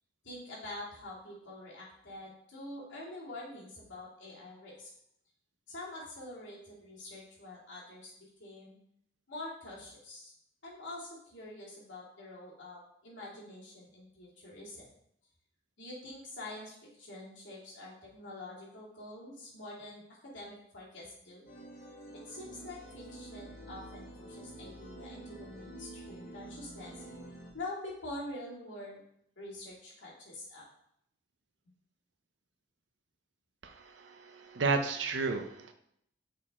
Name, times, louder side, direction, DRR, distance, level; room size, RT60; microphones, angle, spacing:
voice 1, 0.2-4.9 5.7-8.8 9.3-10.3 10.6-14.9 15.8-21.5 22.1-27.0 27.5-29.0 29.4-30.6, left 2 dB, 90° left, -6 dB, 2.6 m, -46 dB
sound 1, 21.5-27.5, right 1 dB, 55° left, 1.5 m, -48 dB
voice 2, 33.6-35.7, right 4 dB, 75° right, 7 dB, 0.7 m, -33 dB
6.5 x 4.1 x 3.7 m, 0.71 s
head